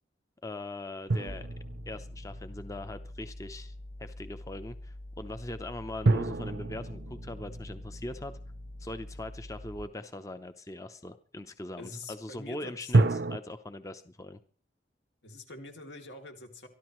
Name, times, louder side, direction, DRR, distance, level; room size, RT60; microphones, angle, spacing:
voice 1, 0.4-1.5 1.9-3.7 4.0-8.4 8.8-14.4, left 1 dB, 20° left, 10 dB, 0.7 m, -41 dB
sound 1, 1.1-3.1 6.1-9.3 12.9-13.4, right 2 dB, 65° right, 0.6 m, -29 dB
sound 2, 1.3-9.8, left 1 dB, 35° left, 2.3 m, -45 dB
voice 2, 11.8-12.9 15.2-16.7, left 2 dB, 80° left, 3 dB, 3.0 m, -45 dB
24.0 x 13.0 x 3.1 m, 0.42 s
head